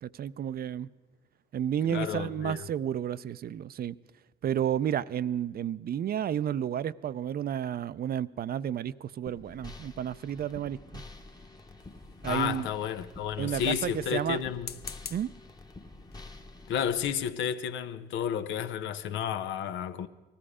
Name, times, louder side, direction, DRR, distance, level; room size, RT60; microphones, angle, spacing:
voice 1, 0.0-0.9 1.5-4.0 4.4-11.0 12.2-12.7 13.4-14.4 15.1-15.3, right 9 dB, 55° right, 0.4 m, -31 dB
voice 2, 1.9-2.6 12.2-14.7 16.7-20.1, left 8 dB, 90° left, 0.6 m, -31 dB
sound 1, 9.3-17.1, left 2 dB, 20° left, 1.0 m, -48 dB
sound 2, 11.8-12.6 14.5-15.4 16.1-16.3 16.7-16.8 17.0-17.3, left 7 dB, 55° left, 0.7 m, -45 dB
19.0 x 14.0 x 4.9 m
cardioid pair, 80°, 19 cm